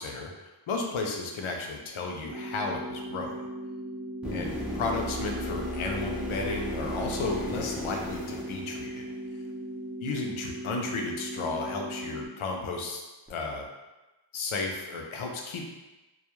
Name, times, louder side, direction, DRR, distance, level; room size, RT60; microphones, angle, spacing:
voice 1, 0.0-3.5 4.3-9.1 10.0-13.0 13.3-13.7 14.3-15.7, left 3 dB, 75° left, 2 dB, 0.5 m, -33 dB
sound 1, 2.3-12.3, right 1 dB, 55° right, 0.6 m, -38 dB
sound 2, 4.2-9.3 13.3-13.4, equal, ahead, 0.5 m, -36 dB
2.3 x 2.0 x 2.9 m, 1.1 s
wide cardioid pair, 90°, 50 cm